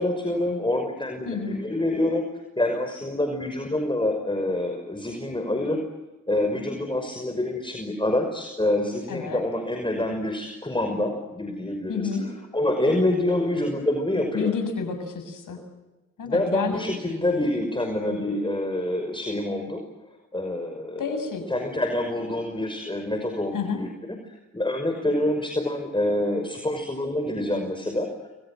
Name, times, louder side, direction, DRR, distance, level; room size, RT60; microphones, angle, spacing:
voice 1, 0.0-2.2 2.6-5.8 6.3-12.1 12.5-14.5 16.2-19.8 20.3-21.2 21.5-23.9 24.5-28.1, left 1 dB, 15° left, 4 dB, 5.8 m, -26 dB
voice 2, 1.3-1.6 9.1-9.4 11.9-12.3 14.3-15.6 16.2-16.8 21.0-21.4 23.5-23.8, left 5 dB, 75° left, 7 dB, 7.2 m, -29 dB
29.0 x 23.5 x 7.7 m, 1.1 s
cardioid pair, 55°, 32 cm